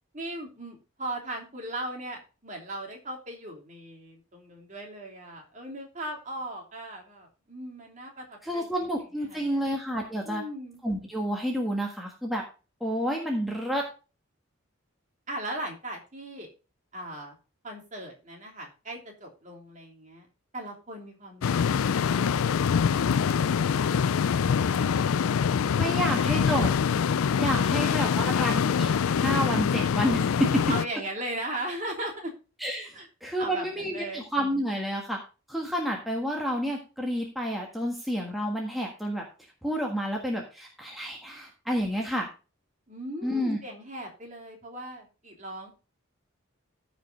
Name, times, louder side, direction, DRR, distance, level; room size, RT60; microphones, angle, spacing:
voice 1, 0.1-8.7 9.2-9.7 10.2-10.8 15.3-16.5 16.9-17.4 17.6-20.3 20.5-21.5 21.7-24.0 24.4-25.5 30.7-32.3 32.9-33.1 33.4-34.3 42.9-45.8, right 1 dB, 35° right, 1 dB, 3.0 m, -39 dB
voice 2, 8.4-10.4 10.8-12.4 12.8-13.8 25.7-26.7 27.4-30.5 32.6-35.2 35.5-39.2 39.6-42.3 43.2-43.6, equal, ahead, -1 dB, 1.5 m, -29 dB
sound 1, 21.4-30.9, left 7 dB, 80° left, 0.4 m, -24 dB
14.5 x 5.2 x 3.8 m, 0.32 s
head